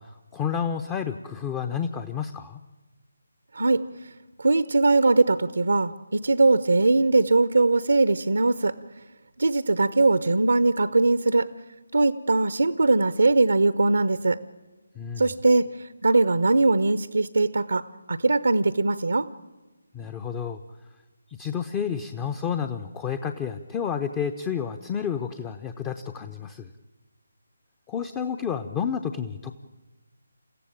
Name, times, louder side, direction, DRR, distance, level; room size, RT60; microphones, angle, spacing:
voice 1, 0.0-2.6 14.9-15.3 19.9-20.6 21.3-26.7 27.9-29.5, left 7 dB, 15° left, 9 dB, 0.7 m, -30 dB
voice 2, 4.4-8.7 9.4-11.5 11.9-14.4 15.2-19.3, right 3 dB, 65° right, 14 dB, 0.8 m, -21 dB
28.0 x 15.0 x 9.0 m, 1.2 s
figure-of-eight pair, 150°, 0 cm